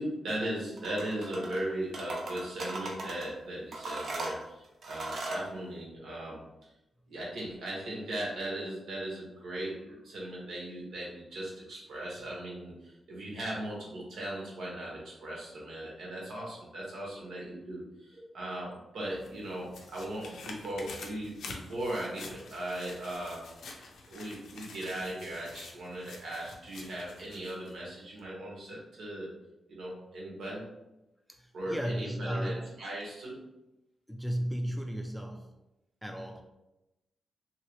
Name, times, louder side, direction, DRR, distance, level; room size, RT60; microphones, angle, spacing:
voice 1, 0.0-6.4 7.1-23.4 24.1-29.3 29.7-30.6 31.5-33.4, right 1 dB, 80° right, -4 dB, 1.2 m, -38 dB
sound 1, 0.8-1.6 1.9-3.3 3.7-5.5, right 2 dB, 65° right, 0.6 m, -38 dB
sound 2, 19.0-27.8 28.2-28.3, left 3 dB, 85° left, 0.5 m, -48 dB
voice 2, 31.3-32.7 34.1-35.5 36.0-36.4, equal, ahead, 2 dB, 0.3 m, -34 dB
2.9 x 2.8 x 3.0 m, 0.94 s
wide cardioid pair, 120°, 0 cm